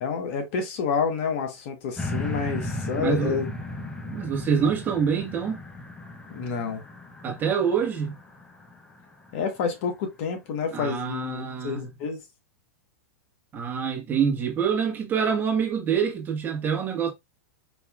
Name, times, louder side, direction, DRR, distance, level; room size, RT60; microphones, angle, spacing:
voice 1, 0.0-3.5 6.3-6.8 9.3-12.2, left 6 dB, 55° left, 1.2 m, -29 dB
sound 1, 2.0-9.3 9.9-10.0, left 1 dB, 10° left, 0.8 m, -36 dB
voice 2, 3.0-3.4 4.1-5.6 7.2-8.1 10.7-11.9 13.5-17.1, right 7 dB, 25° right, 1.3 m, -26 dB
4.7 x 2.8 x 2.4 m
hypercardioid pair, 120°, 8 cm